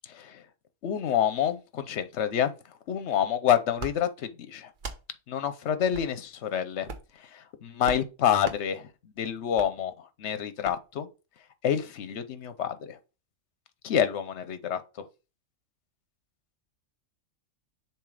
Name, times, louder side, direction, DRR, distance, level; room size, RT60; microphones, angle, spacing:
voice 1, 0.1-0.4 0.8-2.5 2.9-4.7 5.3-6.9 7.3-8.9 9.2-9.9 10.2-11.1 11.6-13.0 13.8-15.0, left 9 dB, 65° left, 1.0 m, -28 dB
sound 1, 3.8-4.0 4.7-5.0 5.9-6.1 6.8-7.1 7.8-8.0 8.4-8.6 9.5-9.7 10.6-10.8, right 3 dB, 45° right, 1.0 m, -38 dB
7.1 x 3.0 x 4.9 m
omnidirectional pair, 1.3 m